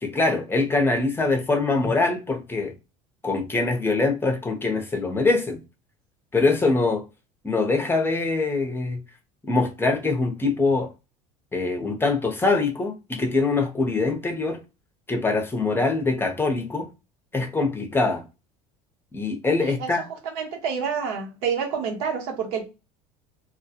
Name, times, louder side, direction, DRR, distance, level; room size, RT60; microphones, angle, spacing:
voice 1, 0.0-2.7 3.2-5.6 6.3-7.0 7.4-9.0 9.5-10.9 11.5-14.6 15.1-16.9 17.3-18.2 19.1-20.0, left 3 dB, 10° left, 0.7 m, -23 dB
voice 2, 20.3-22.6, right 6 dB, 70° right, 0.9 m, -28 dB
2.2 x 2.0 x 2.8 m
supercardioid pair, 90°, 18 cm